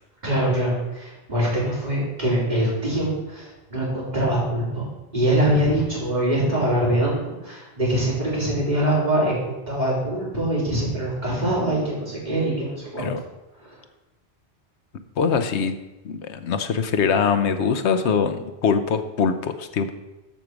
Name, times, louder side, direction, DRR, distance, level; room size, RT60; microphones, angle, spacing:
voice 1, 0.2-4.9 5.1-13.1 13.6-13.7, right 1 dB, 40° right, -7 dB, 3.8 m, -23 dB
voice 2, 15.2-15.8 16.0-19.9, left 6 dB, 80° left, 8 dB, 1.0 m, -23 dB
13.5 x 5.2 x 4.6 m, 1.1 s
omnidirectional pair, 1.1 m